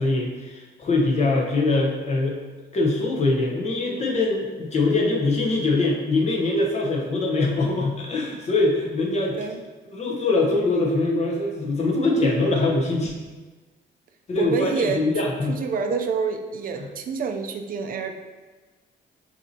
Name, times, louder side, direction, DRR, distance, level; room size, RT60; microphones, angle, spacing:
voice 1, 0.0-2.4 2.7-9.4 9.9-13.1 14.3-15.6 16.8-16.9, left 2 dB, 35° left, -1 dB, 0.8 m, -23 dB
voice 2, 14.4-18.1, right 5 dB, 50° right, 6 dB, 0.4 m, -28 dB
7.2 x 2.7 x 2.7 m, 1.3 s
cardioid pair, 140°, 19 cm